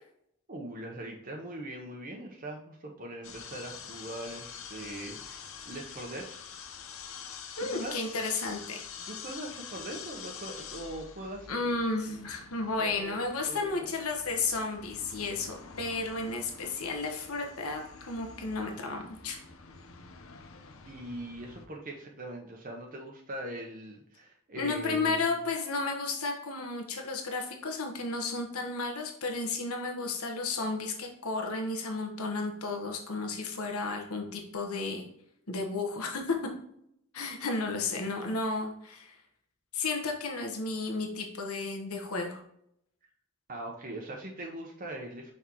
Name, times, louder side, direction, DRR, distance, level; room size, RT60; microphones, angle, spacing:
voice 1, 0.5-6.4 6.6-6.7 7.6-8.1 9.0-11.7 12.1-12.3 12.8-13.2 13.5-13.7 20.9-25.2 43.5-45.3, right 1 dB, 40° right, 0 dB, 0.9 m, -41 dB
sound 1, 3.2-21.7, left 6 dB, 70° left, 0.8 m, -47 dB
voice 2, 7.6-8.8 11.5-19.4 24.6-35.0 35.5-36.4 37.1-39.2 39.7-42.4, left 3 dB, 90° left, 2 dB, 1.3 m, -33 dB
5.9 x 5.4 x 3.0 m, 0.73 s
head